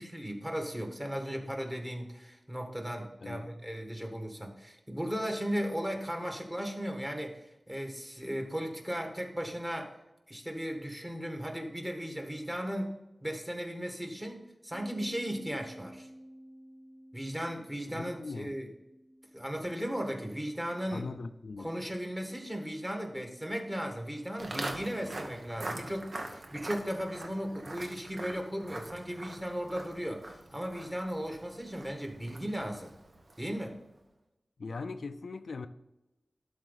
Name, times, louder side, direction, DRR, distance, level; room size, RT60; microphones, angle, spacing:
voice 1, 0.0-7.4 7.7-9.9 10.3-16.1 17.1-18.7 19.3-21.1 21.6-32.9 33.4-33.8, equal, 15° right, 1.7 m, -36 dB
Bass guitar, 14.7-21.0, equal, 15° left, 1.0 m, -52 dB
voice 2, 17.8-18.6 20.9-21.7 34.6-35.7, left 4 dB, 85° left, 0.4 m, -40 dB
Walk footsteps, 24.4-33.6, right 2 dB, 65° right, 1.1 m, -43 dB
12.0 x 4.2 x 4.0 m
wide cardioid pair, 60°, 0 cm